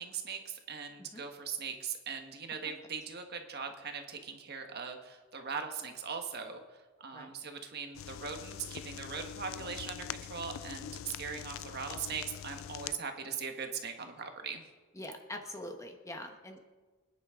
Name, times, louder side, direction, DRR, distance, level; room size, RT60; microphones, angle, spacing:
voice 1, 0.0-6.6 7.0-14.6, right 6 dB, 50° right, 5 dB, 1.5 m, -40 dB
sound 1, 7.9-13.0, left 10 dB, 65° left, 0.3 m, -44 dB
voice 2, 14.9-16.6, left 1 dB, 15° left, 4 dB, 1.1 m, -43 dB
25.5 x 10.0 x 3.7 m, 1.3 s
head